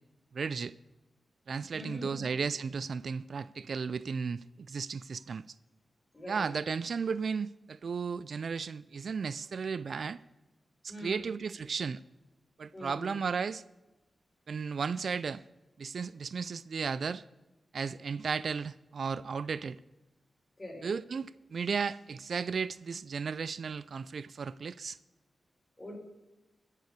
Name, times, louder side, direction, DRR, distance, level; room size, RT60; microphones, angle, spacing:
voice 1, 0.3-0.7 1.5-5.4 6.3-10.2 10.8-12.0 12.6-13.6 14.5-15.4 15.8-17.2 17.7-19.8 20.8-25.0, right 5 dB, 65° right, 0.3 m, -34 dB
voice 2, 1.7-2.2 6.1-6.5 10.9-11.3 12.7-13.1 20.6-20.9 25.8-25.9, left 1 dB, 25° left, 4.4 m, -43 dB
15.0 x 6.7 x 4.8 m
cardioid pair, 75°, 0 cm